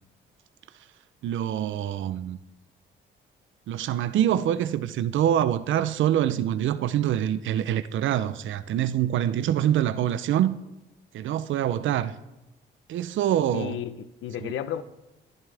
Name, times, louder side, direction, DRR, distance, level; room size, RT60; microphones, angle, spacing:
voice 1, 1.2-2.4 3.7-10.6 11.1-12.2 12.9-13.8 14.4-14.5, right 11 dB, 75° right, 0.7 m, -25 dB
voice 2, 13.5-14.8, left 10 dB, 80° left, 0.9 m, -33 dB
27.0 x 11.0 x 3.5 m
cardioid pair, 90°, 20 cm